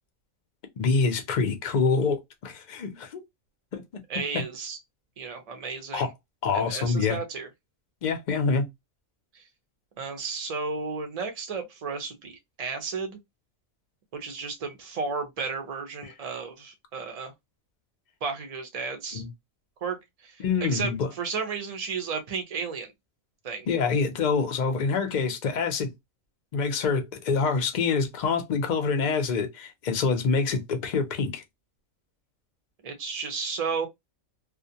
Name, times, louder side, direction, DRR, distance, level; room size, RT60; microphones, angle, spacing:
voice 1, 0.8-3.2 3.7-3.8 4.3-4.4 5.9-6.1 6.4-7.2 8.0-8.7 19.1-19.3 20.4-21.1 23.7-25.9 26.5-31.4, left 5 dB, 55° left, 0.5 m, -26 dB
voice 2, 4.1-4.8 5.2-6.1 6.5-7.5 9.3-9.4 10.0-13.2 14.1-17.3 18.2-19.2 19.8-22.9 23.4-23.7 32.8-33.9, right 5 dB, 55° right, 0.4 m, -33 dB
2.4 x 2.1 x 2.6 m
omnidirectional pair, 1.4 m